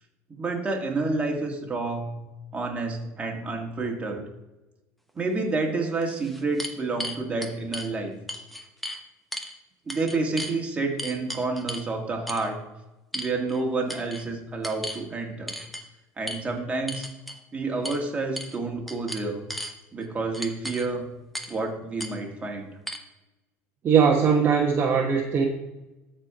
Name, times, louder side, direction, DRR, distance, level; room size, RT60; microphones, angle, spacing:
voice 1, 0.3-2.1 2.5-4.3 5.1-8.2 9.9-12.6 13.1-15.6 16.2-17.1 17.5-19.4 19.9-21.0 21.5-22.7, right 3 dB, 20° right, 1 dB, 1.9 m, -29 dB
sound 1, 5.4-5.5 6.0-7.9 8.3-9.0 9.3-9.5 9.9-10.6 11.0-11.9 12.3-12.5 13.1-13.6 13.9-14.2 14.6-15.0 15.5-15.8 16.3-16.4 16.9-17.4 17.8-18.0 18.4-18.6 18.9-19.7 20.3-20.9 21.3-21.6 22.0-22.1 22.9-23.0, equal, ahead, 1.0 m, -35 dB
voice 2, 23.8-25.5, right 6 dB, 35° right, 0 dB, 1.1 m, -20 dB
13.5 x 4.5 x 4.9 m, 0.99 s
supercardioid pair, 120°, 7 cm